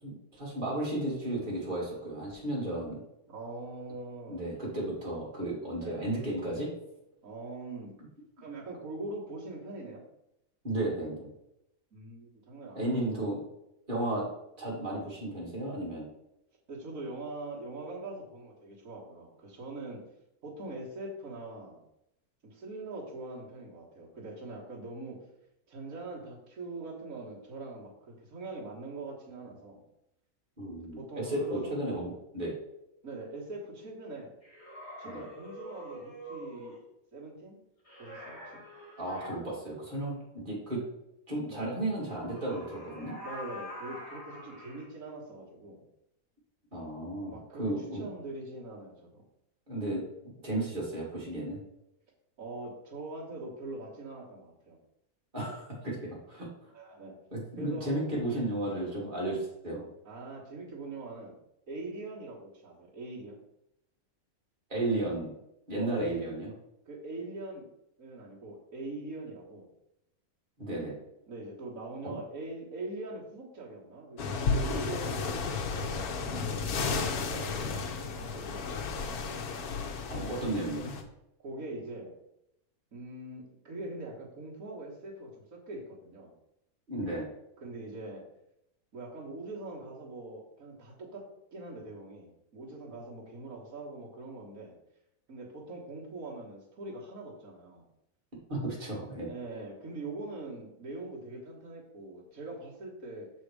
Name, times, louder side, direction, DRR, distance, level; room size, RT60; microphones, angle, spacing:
voice 1, 0.0-3.0 4.3-6.7 10.6-11.3 12.7-13.4 13.9-14.3 14.6-16.1 30.6-32.6 35.0-35.2 39.0-40.8 41.3-43.2 46.7-48.0 49.7-51.6 55.3-56.7 57.3-59.9 64.7-65.3 65.7-66.5 70.6-71.0 72.0-72.2 80.1-80.9 86.9-87.3 98.5-99.3, right 1 dB, 35° right, -5 dB, 2.4 m, -34 dB
voice 2, 3.3-4.4 5.8-6.1 7.2-7.9 8.4-10.0 11.9-13.3 13.9-14.3 16.7-20.0 20.4-21.8 22.4-25.3 25.7-29.8 30.9-31.8 33.0-34.3 35.0-36.8 37.1-37.6 38.0-38.6 41.5-41.8 43.2-45.8 47.3-49.2 52.4-54.8 56.7-57.2 57.6-58.2 60.1-61.4 61.7-63.4 65.8-66.4 66.9-67.7 68.0-69.7 71.3-75.8 76.2-78.8 81.4-82.1 82.9-86.3 87.6-88.2 88.9-91.3 91.5-94.8 95.3-97.9 99.3-103.3, right 2 dB, 65° right, -5 dB, 2.0 m, -42 dB
sound 1, 34.4-36.8 37.8-39.4 41.9-44.9, equal, 25° left, 2.3 m, -45 dB
sound 2, 74.2-81.0, left 4 dB, 80° left, 1.3 m, -33 dB
6.4 x 4.1 x 4.8 m, 0.82 s
omnidirectional pair, 1.6 m